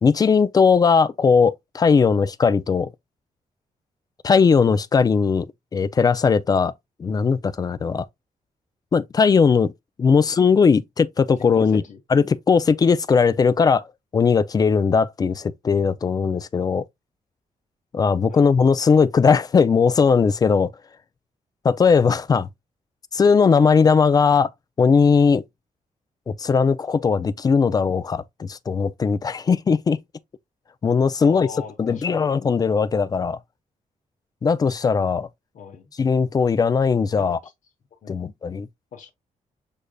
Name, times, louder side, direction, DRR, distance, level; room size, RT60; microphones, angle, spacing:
voice 1, 0.0-2.9 4.2-5.5 5.7-6.7 7.0-8.1 8.9-9.7 10.0-11.8 12.1-13.8 14.1-16.8 17.9-20.7 21.6-22.5 23.1-24.5 24.8-25.4 26.3-30.0 30.8-31.5 31.8-33.4 34.4-35.3 36.0-37.4 38.1-38.7, left 5 dB, 30° left, 0.3 m, -18 dB
voice 2, 10.1-10.5 11.5-12.0 18.3-18.5 31.2-32.3 32.7-33.0 35.5-35.8 37.2-37.5 38.0-38.2 38.9-39.1, left 7 dB, 65° left, 1.1 m, -40 dB
6.4 x 3.4 x 2.2 m
wide cardioid pair, 150°, 14 cm